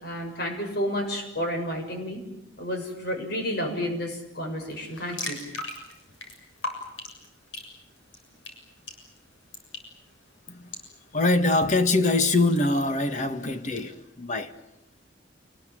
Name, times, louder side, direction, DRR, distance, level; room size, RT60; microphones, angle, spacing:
voice 1, 0.0-2.2 2.6-5.4, equal, 55° left, 6.8 m, -31 dB
sound 1, 4.7-13.9, left 2 dB, 85° left, 7.1 m, -42 dB
voice 2, 11.1-14.5, left 2 dB, 40° left, 1.8 m, -23 dB
28.5 x 21.0 x 9.0 m
head